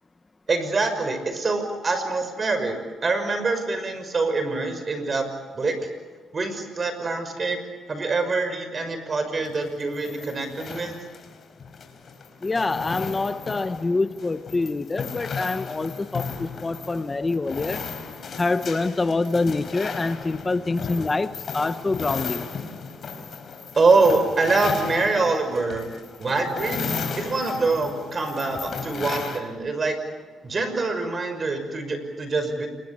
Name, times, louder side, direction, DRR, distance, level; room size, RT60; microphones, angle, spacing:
voice 1, 0.5-5.3 5.5-5.7 6.3-7.6 7.9-11.0 23.7-25.9 26.2-30.0 30.4-32.7, right 3 dB, 35° right, 9 dB, 5.9 m, -24 dB
sound 1, 9.4-29.4, left 5 dB, 50° left, 4.7 m, -35 dB
voice 2, 12.4-17.9 18.4-22.5, left 3 dB, 25° left, 11 dB, 0.9 m, -26 dB
27.5 x 23.0 x 8.7 m, 1.4 s
cardioid pair, 90°, 0 cm